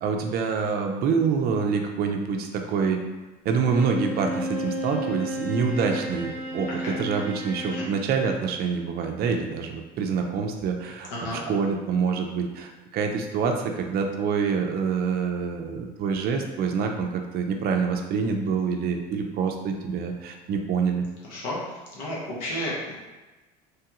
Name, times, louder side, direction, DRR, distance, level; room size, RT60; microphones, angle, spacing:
voice 1, 0.0-3.0 3.4-21.1, right 5 dB, 45° right, 3 dB, 0.5 m, -26 dB
Bowed string instrument, 3.6-7.9, equal, 10° right, 0.7 m, -32 dB
voice 2, 11.1-11.4 21.2-21.6 21.9-22.9, left 1 dB, 80° left, -4 dB, 1.0 m, -32 dB
3.2 x 2.3 x 2.9 m, 1.2 s
supercardioid pair, 95°, 21 cm